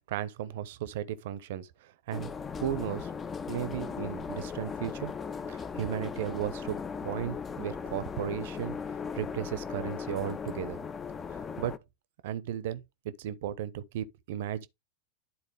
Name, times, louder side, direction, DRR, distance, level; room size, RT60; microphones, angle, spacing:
voice 1, 0.1-2.3 2.6-3.1 3.5-5.1 5.5-6.8 7.0-8.8 9.1-10.8 11.3-11.8 12.2-14.7, right 10 dB, 55° right, 0.8 m, -35 dB
sound 1, 2.1-11.8, left 6 dB, 20° left, 0.7 m, -38 dB
11.5 x 4.2 x 3.4 m
figure-of-eight pair, 90°, 0 cm